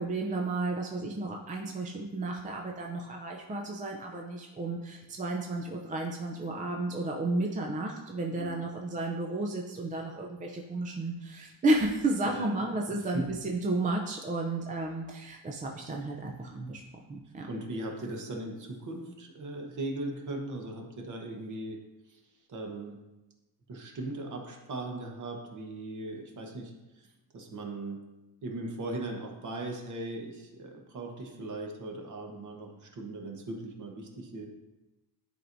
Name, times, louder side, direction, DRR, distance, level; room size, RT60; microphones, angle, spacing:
voice 1, 0.0-16.8 17.1-17.5, right 2 dB, 20° right, 1 dB, 0.4 m, -32 dB
voice 2, 8.3-8.7 12.3-12.5 13.1-13.3 17.5-22.2 22.5-23.0 23.7-27.1 27.3-28.0 28.4-34.5, right 2 dB, 40° right, 2 dB, 1.2 m, -39 dB
11.0 x 4.6 x 2.6 m, 1.0 s
cardioid pair, 140°, 46 cm